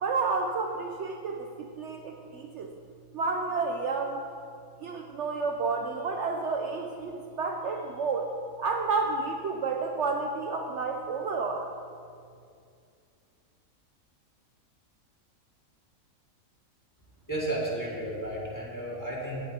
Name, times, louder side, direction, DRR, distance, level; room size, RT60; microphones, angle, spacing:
voice 1, 0.0-2.7 3.1-4.2 4.8-8.3 8.6-11.7, right 4 dB, 65° right, 3 dB, 0.9 m, -30 dB
voice 2, 17.3-19.4, right 1 dB, 15° left, -6 dB, 2.1 m, -33 dB
18.5 x 7.4 x 2.9 m, 2.3 s
omnidirectional pair, 1.4 m